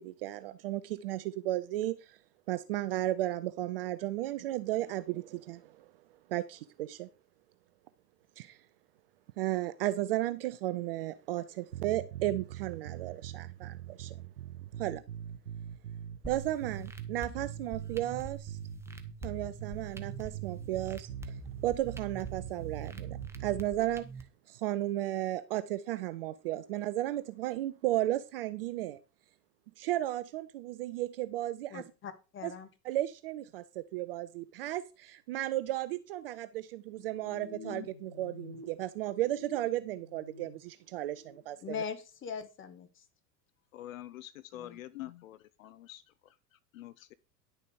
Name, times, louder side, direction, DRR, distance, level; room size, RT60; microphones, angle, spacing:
voice 1, 0.0-2.2 2.5-5.9 6.3-7.1 8.4-8.6 9.4-14.2 14.8-15.0 16.3-18.6 19.2-21.4 21.6-24.1 24.5-29.0 29.8-31.8 32.4-32.5 32.8-41.6, right 15 dB, 40° right, 0.4 m, -34 dB
sound 1, 11.7-23.7, right 10 dB, 80° right, 0.7 m, -42 dB
sound 2, 16.2-24.2, right 2 dB, 5° right, 1.0 m, -46 dB
voice 2, 31.7-32.7 41.6-43.0 44.5-44.8, left 6 dB, 25° left, 1.5 m, -41 dB
sound 3, 36.9-38.6 38.9-40.5 40.9-41.4, left 3 dB, 80° left, 2.5 m, -49 dB
voice 3, 43.7-47.1, left 14 dB, 55° left, 0.7 m, -47 dB
10.5 x 6.6 x 4.7 m
figure-of-eight pair, 85°, 49 cm